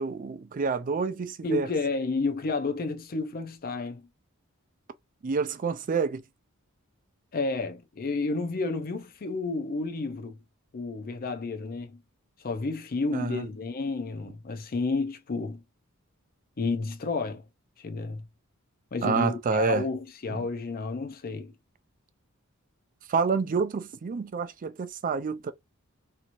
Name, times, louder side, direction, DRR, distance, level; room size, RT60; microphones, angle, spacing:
voice 1, 0.0-1.7 5.2-6.2 13.1-13.5 19.0-19.9 20.3-20.4 23.1-25.5, right 5 dB, 40° right, 0.4 m, -28 dB
voice 2, 1.4-4.1 7.3-10.4 10.7-12.0 12.4-15.6 16.6-17.4 17.8-18.2 18.9-21.5, left 3 dB, 45° left, 0.5 m, -31 dB
3.0 x 2.8 x 2.5 m
head